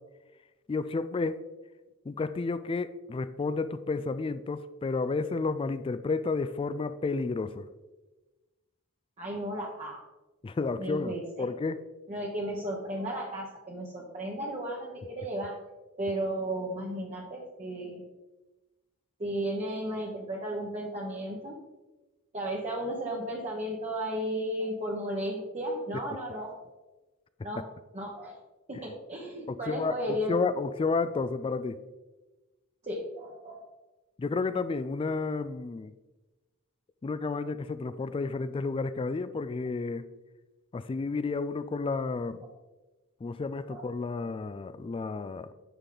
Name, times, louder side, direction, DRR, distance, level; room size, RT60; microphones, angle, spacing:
voice 1, 0.7-1.4 2.1-7.7 10.4-11.8 25.9-26.0 29.5-31.8 34.2-35.9 37.0-40.1 40.7-42.4 43.2-45.5, left 4 dB, 25° left, 13 dB, 0.3 m, -31 dB
voice 2, 9.2-10.0 10.8-11.5 12.1-15.5 16.0-18.0 19.2-21.6 22.3-26.6 27.4-27.6 27.9-28.4 28.7-30.5 32.8-33.6 37.4-37.5 43.7-43.8, right 1 dB, 30° right, -3 dB, 1.1 m, -34 dB
9.8 x 6.2 x 3.9 m, 1.1 s
head